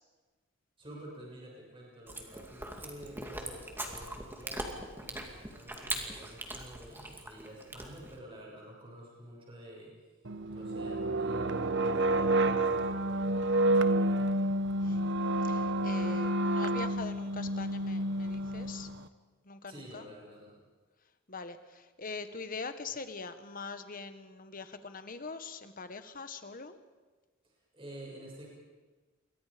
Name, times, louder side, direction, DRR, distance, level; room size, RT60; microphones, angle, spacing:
voice 1, 0.8-9.9 10.5-14.5 19.7-20.6 27.4-28.5, right 1 dB, 25° right, -3 dB, 6.9 m, -50 dB
Chewing mastication, 2.1-8.2, right 1 dB, 10° right, 2.5 m, -41 dB
sound 1, 10.3-19.0, right 1 dB, 60° right, 1.0 m, -29 dB
voice 2, 15.4-18.9 19.4-20.1 21.3-26.8, left 4 dB, 40° left, 9 dB, 1.4 m, -43 dB
29.0 x 23.5 x 5.2 m, 1.3 s
head